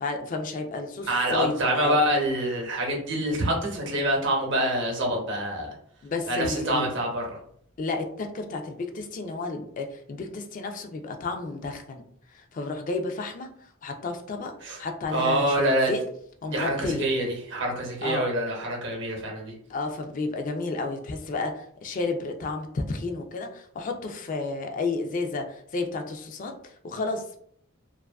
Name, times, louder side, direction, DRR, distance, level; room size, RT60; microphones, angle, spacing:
voice 1, 0.0-2.0 6.0-6.9 7.8-12.0 12.3-13.5 13.8-16.0 16.4-17.1 18.0-18.3 19.7-27.4, left 3 dB, 40° left, 5 dB, 0.3 m, -31 dB
voice 2, 1.0-5.7 6.3-7.4 14.6-14.8 15.1-15.9 16.5-19.5, right 1 dB, 60° right, 1 dB, 0.7 m, -26 dB
2.5 x 2.3 x 2.2 m, 0.64 s
head